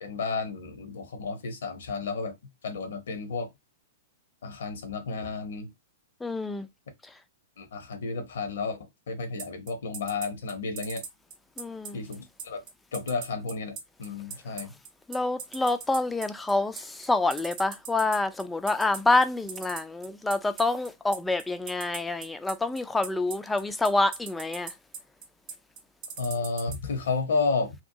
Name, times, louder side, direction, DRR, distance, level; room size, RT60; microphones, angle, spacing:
voice 1, 0.0-2.3 2.6-3.5 4.4-5.7 7.6-8.8 9.1-11.0 11.9-12.6 12.9-14.8 26.2-27.7, left 4 dB, 60° left, 0.7 m, -32 dB
voice 2, 6.2-6.7 11.6-12.0 15.1-24.7, left 2 dB, 5° left, 0.3 m, -27 dB
sound 1, 9.4-26.8, right 6 dB, 35° right, 0.7 m, -39 dB
2.7 x 2.2 x 2.6 m
figure-of-eight pair, 105°, 0 cm